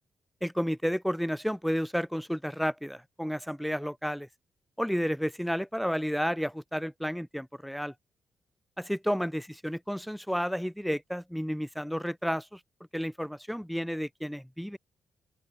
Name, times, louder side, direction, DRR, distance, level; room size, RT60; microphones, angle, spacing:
voice 1, 0.4-4.3 4.8-7.9 8.8-12.6 12.9-14.8, equal, ahead, 3.9 m, -31 dB
open air
cardioid pair, 80°, 0 cm